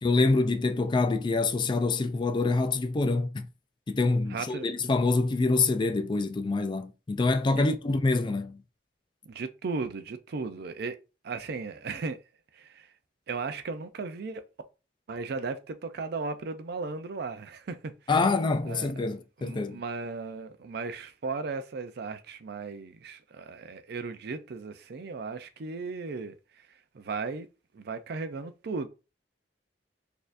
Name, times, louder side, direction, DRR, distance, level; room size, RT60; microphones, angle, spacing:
voice 1, 0.0-3.5 3.9-8.6 18.1-19.8, left 3 dB, 25° left, 0.3 m, -26 dB
voice 2, 4.3-4.7 7.5-7.7 9.3-11.0 11.2-12.2 12.5-12.9 13.3-14.4 15.1-17.9 18.7-18.9 19.4-26.4 26.9-27.5 27.7-28.9, right 4 dB, 65° right, 0.4 m, -36 dB
4.2 x 2.7 x 2.5 m
head